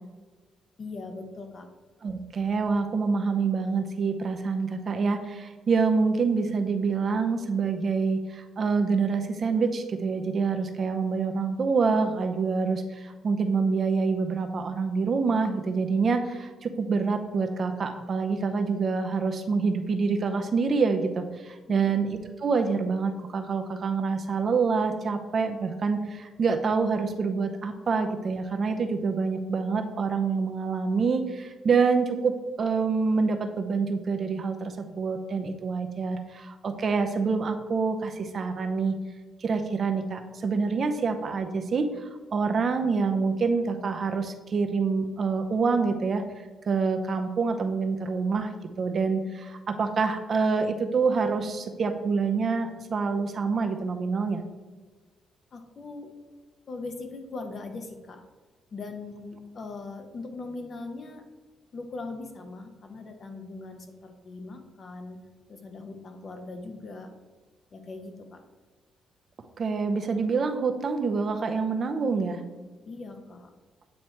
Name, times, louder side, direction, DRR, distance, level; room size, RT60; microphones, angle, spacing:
voice 1, 0.8-1.7 21.7-21.9 55.5-56.1 56.7-58.2 58.7-61.2 61.7-65.2 65.5-67.1 67.7-68.4 72.9-73.5, left 3 dB, 45° left, 5 dB, 0.9 m, -40 dB
voice 2, 2.0-39.0 39.4-46.2 46.7-48.5 48.8-54.4 69.6-72.4, right 4 dB, 50° right, 6 dB, 0.6 m, -26 dB
8.7 x 3.1 x 4.4 m, 1.4 s
cardioid pair, 90°, 0 cm